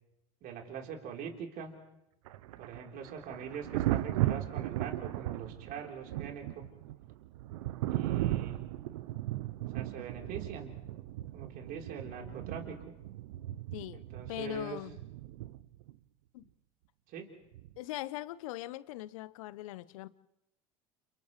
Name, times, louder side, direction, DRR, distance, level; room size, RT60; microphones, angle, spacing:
voice 1, 0.4-1.7 2.6-6.6 7.9-8.6 9.7-10.8 11.3-12.8 13.9-14.8 17.1-17.3, right 7 dB, 55° right, 3.7 m, -43 dB
Thunder, 2.3-15.9 17.5-17.8, right 15 dB, 75° right, 0.7 m, -36 dB
voice 2, 13.7-14.0 14.3-15.0 16.3-16.5 17.8-20.1, left 16 dB, 75° left, 0.8 m, -40 dB
30.0 x 29.5 x 3.2 m
hypercardioid pair, 75°, 18 cm